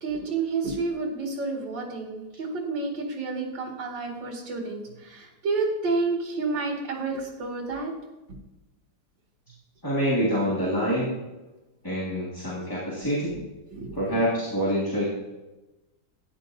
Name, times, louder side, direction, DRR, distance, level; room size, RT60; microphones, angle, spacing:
voice 1, 0.0-7.9 13.3-13.4 13.7-14.2, right 3 dB, 55° right, -1 dB, 2.6 m, -30 dB
voice 2, 9.8-11.2 11.8-13.3 13.9-15.0, equal, 10° left, -8 dB, 1.8 m, -26 dB
13.5 x 9.3 x 2.7 m, 1.1 s
omnidirectional pair, 2.4 m